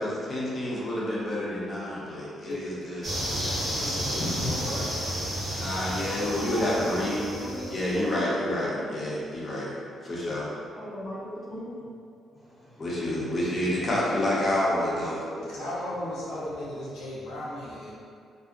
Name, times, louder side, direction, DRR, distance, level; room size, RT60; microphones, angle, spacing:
voice 1, 0.0-3.1 5.5-7.2 7.7-9.7 10.0-10.5 12.8-15.2, left 1 dB, 35° left, -7 dB, 0.7 m, -28 dB
sound 1, 3.0-8.1, equal, 35° right, 0.8 m, -32 dB
voice 2, 3.6-4.8 5.4-5.5 15.5-17.9, left 1 dB, 80° left, -7 dB, 0.6 m, -35 dB
voice 3, 4.5-4.8 6.0-8.8 10.7-11.9 12.3-13.9, equal, ahead, -10 dB, 0.9 m, -40 dB
2.6 x 2.0 x 2.5 m, 2.3 s
cardioid pair, 90°, 0 cm